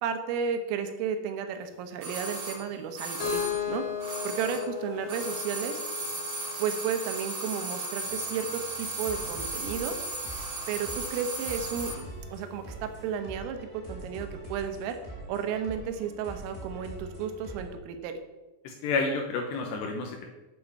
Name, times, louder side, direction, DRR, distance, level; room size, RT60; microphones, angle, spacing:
voice 1, 0.0-3.9 4.3-5.8 6.6-10.0 10.7-15.0 15.3-18.2, right 7 dB, 80° right, 7 dB, 3.6 m, -33 dB
sound 1, 2.0-4.8 5.0-12.0 12.3-12.4, right 2 dB, 45° right, 4.1 m, -36 dB
Keyboard (musical), 3.2-7.1, left 8 dB, 50° left, 3.4 m, -35 dB
sound 2, 8.0-17.7, right 2 dB, 15° right, 3.3 m, -44 dB
voice 2, 18.6-20.3, left 3 dB, 75° left, 2 dB, 2.7 m, -30 dB
9.2 x 6.8 x 6.9 m, 1.1 s
omnidirectional pair, 6.0 m